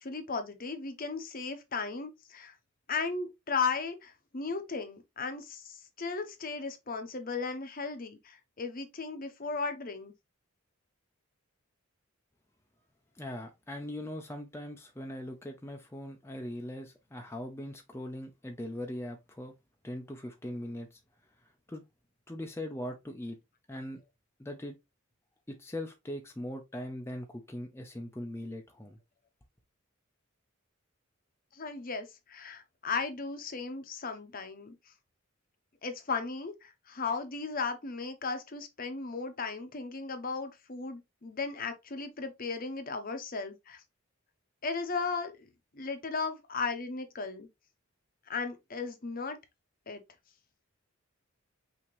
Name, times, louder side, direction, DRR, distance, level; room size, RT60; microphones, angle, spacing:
voice 1, 0.0-2.5 2.9-10.1 31.5-34.7 35.8-43.8 44.6-47.5 48.3-49.4 49.9-50.0, left 4 dB, 45° left, 0.8 m, -36 dB
voice 2, 13.2-19.5 19.8-21.0 21.7-21.8 22.3-23.4 23.7-24.0 24.4-24.8 25.5-29.0, left 1 dB, 10° left, 0.6 m, -40 dB
5.9 x 2.8 x 3.1 m
head